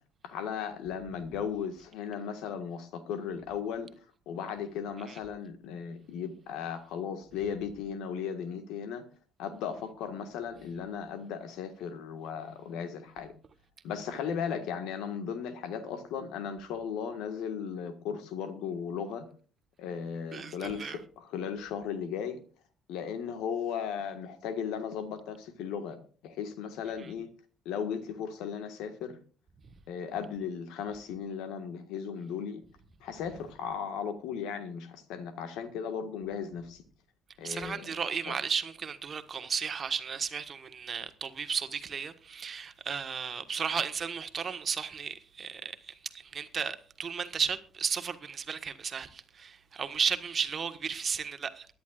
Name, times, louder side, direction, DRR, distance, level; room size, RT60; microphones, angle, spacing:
voice 1, 0.2-3.9 4.3-9.0 9.4-13.3 13.8-19.3 19.8-22.4 22.9-27.3 27.6-29.2 29.9-32.6 33.0-36.8 37.4-37.9 38.3-38.4, left 7 dB, 70° left, 1.5 m, -36 dB
voice 2, 20.3-21.0 37.4-51.7, right 6 dB, 45° right, 1.3 m, -34 dB
23.0 x 10.5 x 2.4 m
hypercardioid pair, 55°, 0 cm